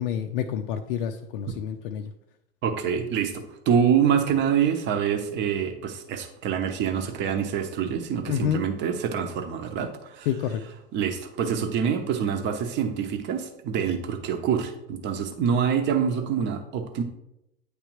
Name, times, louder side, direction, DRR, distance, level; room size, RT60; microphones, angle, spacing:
voice 1, 0.0-2.1 8.3-8.6 10.3-10.6, left 9 dB, 55° left, 5 dB, 0.5 m, -28 dB
voice 2, 2.6-10.3 10.9-17.0, right 7 dB, 35° right, 6 dB, 0.8 m, -26 dB
9.3 x 3.3 x 3.1 m, 0.86 s
figure-of-eight pair, 85°, 32 cm